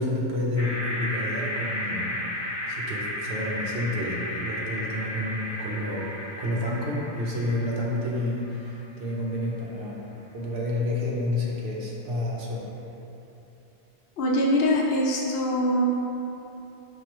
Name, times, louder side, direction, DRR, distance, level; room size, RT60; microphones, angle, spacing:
voice 1, 0.0-12.7, left 1 dB, 75° right, -3 dB, 0.9 m, -30 dB
sound 1, 0.6-8.8, left 1 dB, 40° left, 0.4 m, -33 dB
voice 2, 14.2-15.8, left 1 dB, 70° left, -3 dB, 0.8 m, -23 dB
4.6 x 2.4 x 2.9 m, 2.9 s
omnidirectional pair, 1.1 m